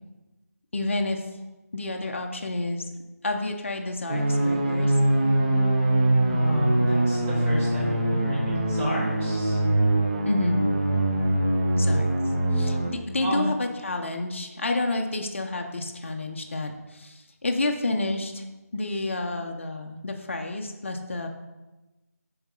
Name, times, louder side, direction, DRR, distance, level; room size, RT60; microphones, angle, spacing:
voice 1, 0.7-1.2 1.7-2.8 3.2-5.0 10.2-10.6 11.8-12.1 12.5-18.4 18.7-21.3, left 2 dB, 45° left, 3 dB, 0.6 m, -29 dB
sound 1, 4.1-12.9, right 1 dB, 25° right, 0.6 m, -23 dB
voice 2, 6.3-9.6 13.2-13.5, equal, 10° right, -9 dB, 1.1 m, -30 dB
6.9 x 3.8 x 3.8 m, 1.1 s
figure-of-eight pair, 170°, 9 cm